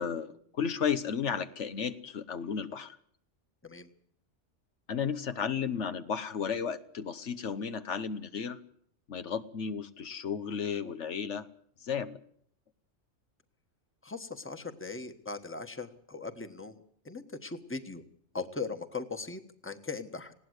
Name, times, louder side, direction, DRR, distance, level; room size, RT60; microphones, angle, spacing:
voice 1, 0.0-3.0 4.9-8.6 9.1-11.5 11.8-12.2, left 7 dB, 75° left, 11 dB, 1.4 m, -33 dB
voice 2, 14.0-16.8 17.0-18.0 18.3-20.3, left 4 dB, 10° left, 8 dB, 1.3 m, -39 dB
20.0 x 17.0 x 8.1 m, 0.64 s
omnidirectional pair, 1.2 m